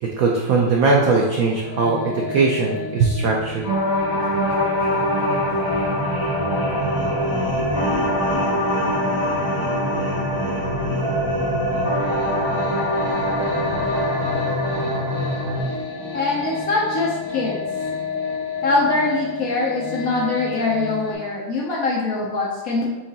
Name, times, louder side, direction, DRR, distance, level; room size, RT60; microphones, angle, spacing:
voice 1, 0.0-3.6, right 4 dB, 80° right, -1 dB, 0.7 m, -20 dB
sound 1, 1.6-21.1, left 3 dB, 10° left, 0.9 m, -31 dB
sound 2, 3.6-15.6, equal, 20° right, 0.6 m, -23 dB
voice 2, 16.1-17.6 18.6-22.9, left 3 dB, 65° left, -4 dB, 0.9 m, -23 dB
4.6 x 3.7 x 2.8 m, 1.2 s
omnidirectional pair, 2.1 m